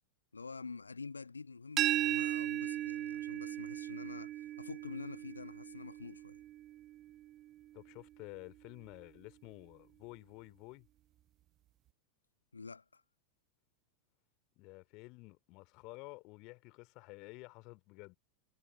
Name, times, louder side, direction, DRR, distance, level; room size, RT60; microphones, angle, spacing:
voice 1, 0.3-6.4 12.5-13.0, left 4 dB, 75° left, 1.3 m, -47 dB
sound 1, 1.8-7.5, right 13 dB, 35° right, 0.6 m, -37 dB
voice 2, 7.7-10.9 14.6-18.2, left 25 dB, 40° left, 2.9 m, -51 dB
figure-of-eight pair, 90°, 0 cm